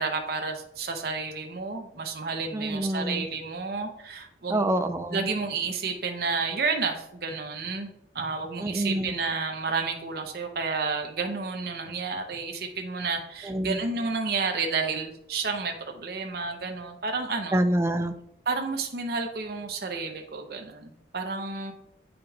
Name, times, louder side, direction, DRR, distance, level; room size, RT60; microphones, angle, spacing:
voice 1, 0.0-4.7 5.1-7.9 8.1-17.7 18.5-21.7, right 4 dB, 60° right, 4 dB, 0.7 m, -31 dB
voice 2, 2.5-3.3 4.5-5.3 8.6-9.2 13.4-13.8 17.5-18.2, right 1 dB, 15° right, 7 dB, 0.3 m, -26 dB
8.6 x 5.1 x 2.3 m, 0.77 s
head